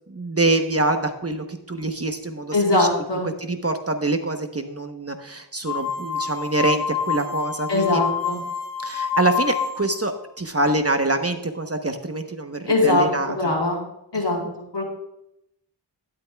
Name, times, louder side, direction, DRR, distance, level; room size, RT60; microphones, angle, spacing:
voice 1, 0.1-2.9 3.2-8.0 8.8-13.6 14.1-14.5, right 2 dB, 35° right, 6 dB, 1.0 m, -25 dB
voice 2, 2.5-3.3 7.7-8.4 12.7-13.8 14.1-14.9, left 2 dB, 75° left, -2 dB, 4.1 m, -22 dB
sound 1, 5.7-10.0, left 7 dB, 50° left, 2.4 m, -27 dB
12.0 x 11.0 x 2.3 m, 0.82 s
wide cardioid pair, 45°, 42 cm